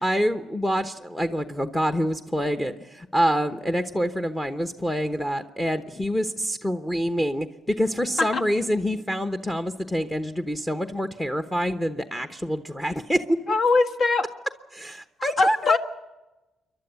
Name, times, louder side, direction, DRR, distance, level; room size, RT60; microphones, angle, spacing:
voice 1, 0.0-13.2 14.7-15.8, equal, 10° left, 8 dB, 1.0 m, -26 dB
voice 2, 13.5-14.2 15.4-15.8, left 3 dB, 55° left, 5 dB, 1.6 m, -21 dB
28.0 x 11.5 x 9.7 m, 1.1 s
cardioid pair, 90°, 0 cm